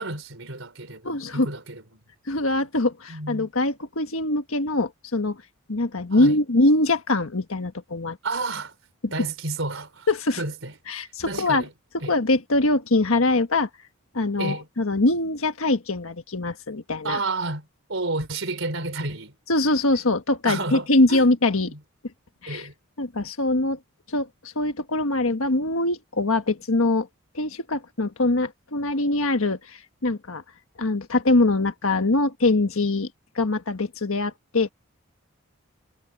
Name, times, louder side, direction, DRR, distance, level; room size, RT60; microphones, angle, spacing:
voice 1, 0.0-2.0 3.1-3.5 6.1-6.4 8.2-8.8 9.1-10.1 10.4-10.7 11.3-11.7 12.0-12.1 14.4-14.7 17.0-19.3 20.4-21.2 21.7-21.8 22.5-22.7, right 3 dB, 70° right, 3.9 m, -31 dB
voice 2, 1.0-1.5 2.3-5.4 5.7-8.2 10.1-10.4 10.9-11.6 12.1-13.7 14.1-17.2 19.5-21.7 22.4-22.6 23.0-23.8 24.1-27.1 27.3-30.4 30.8-33.1 33.3-34.7, left 2 dB, 85° left, 1.5 m, -23 dB
head